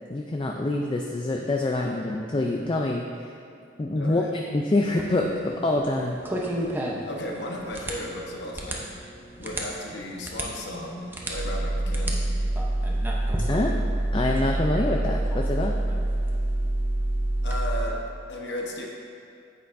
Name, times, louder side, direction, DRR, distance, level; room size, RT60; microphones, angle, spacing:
voice 1, 0.1-3.0 3.8-6.2 13.5-13.8 14.1-15.7, left 2 dB, 25° left, 1 dB, 0.4 m, -26 dB
voice 2, 3.9-4.3 7.1-8.9 9.4-12.3 17.4-18.0 18.3-18.9, left 1 dB, 65° left, 0 dB, 1.0 m, -35 dB
sound 1, 4.8-17.6, right 1 dB, 10° right, 0.7 m, -37 dB
sound 2, 11.3-17.9, right 1 dB, 55° right, 0.5 m, -26 dB
9.3 x 8.1 x 2.6 m, 2.5 s
head